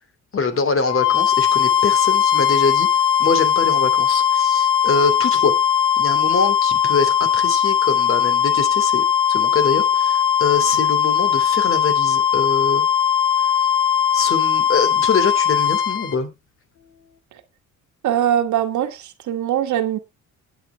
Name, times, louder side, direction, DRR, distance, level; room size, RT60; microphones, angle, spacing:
voice 1, 0.3-2.9 3.2-5.6 6.0-12.8 14.1-16.3, left 4 dB, 45° left, 2.9 m, -24 dB
sound 1, 0.8-16.1, left 8 dB, 90° left, 2.1 m, -18 dB
voice 2, 18.0-20.0, right 10 dB, 75° right, 1.6 m, -21 dB
19.0 x 8.6 x 2.3 m
cardioid pair, 90°, 30 cm